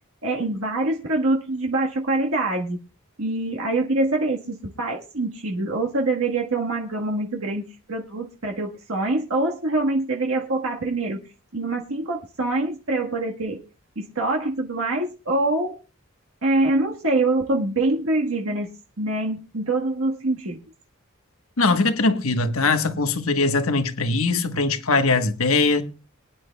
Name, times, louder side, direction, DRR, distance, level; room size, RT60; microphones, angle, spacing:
voice 1, 0.2-2.8 3.2-11.2 11.5-13.6 13.9-15.8 16.4-18.7 19.0-20.6, right 2 dB, 80° right, 1.5 m, -24 dB
voice 2, 21.6-25.8, left 3 dB, 85° left, 1.2 m, -21 dB
24.0 x 10.0 x 2.3 m
head